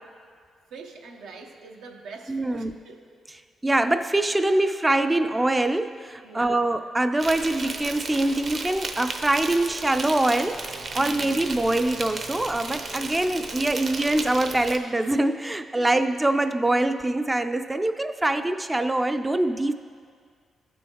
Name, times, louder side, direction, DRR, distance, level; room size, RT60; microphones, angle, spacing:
voice 1, 0.7-3.1 6.2-6.6 10.9-11.3 15.7-16.0, right 4 dB, 85° right, 2 dB, 0.8 m, -43 dB
voice 2, 2.3-2.7 3.6-19.7, right 1 dB, 15° right, 9 dB, 0.3 m, -24 dB
Insect, 7.2-14.8, right 3 dB, 55° right, 0.8 m, -34 dB
14.0 x 6.3 x 2.9 m, 2.1 s
cardioid pair, 80°, 0 cm